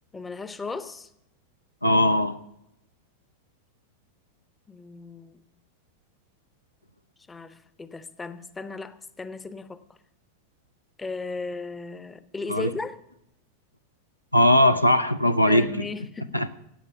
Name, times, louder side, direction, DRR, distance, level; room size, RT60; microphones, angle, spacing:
voice 1, 0.1-1.1 4.7-5.5 7.3-9.8 11.0-13.0 15.5-16.5, left 4 dB, 15° left, 0.7 m, -36 dB
voice 2, 1.8-2.4 12.5-12.7 14.3-15.7 16.3-16.5, left 1 dB, 90° left, 0.6 m, -19 dB
15.5 x 8.6 x 5.9 m
figure-of-eight pair, 90°, 0 cm